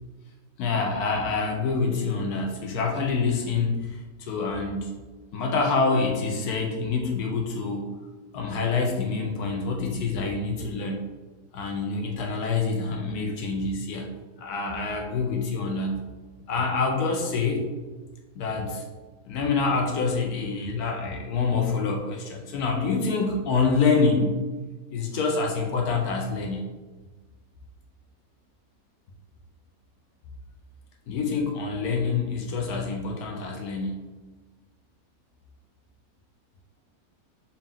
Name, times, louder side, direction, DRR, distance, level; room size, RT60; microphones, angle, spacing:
voice 1, 0.6-4.9 5.3-7.9 8.3-11.0 11.5-14.1 14.4-16.0 16.5-17.7 18.3-18.8 19.3-24.4 24.9-26.6 31.1-34.0, left 4 dB, 80° left, 1 dB, 1.1 m, -26 dB
4.1 x 2.4 x 3.5 m, 1.3 s
omnidirectional pair, 1.6 m